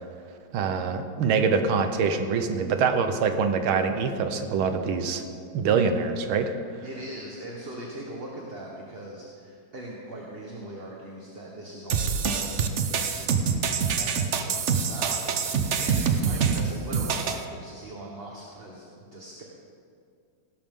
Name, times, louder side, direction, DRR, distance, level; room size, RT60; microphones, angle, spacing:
voice 1, 0.5-5.2 5.5-6.5, right 5 dB, 90° right, 7 dB, 1.8 m, -24 dB
voice 2, 6.8-19.4, right 1 dB, 30° right, -2 dB, 1.4 m, -41 dB
sound 1, 11.9-17.4, right 6 dB, 55° right, 0.8 m, -25 dB
17.5 x 12.5 x 3.8 m, 2.4 s
omnidirectional pair, 2.2 m